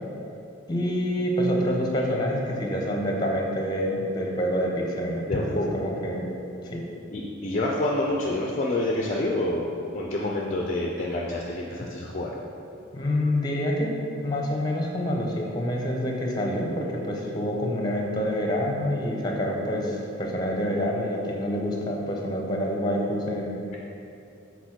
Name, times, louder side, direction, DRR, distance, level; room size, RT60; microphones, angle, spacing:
voice 1, 0.7-6.2 6.6-6.8 12.9-13.9 14.2-23.6, equal, 20° left, -1 dB, 0.8 m, -27 dB
voice 2, 5.3-5.7 7.1-12.3, left 1 dB, 35° left, -2 dB, 0.4 m, -27 dB
6.8 x 4.1 x 4.4 m, 2.8 s
head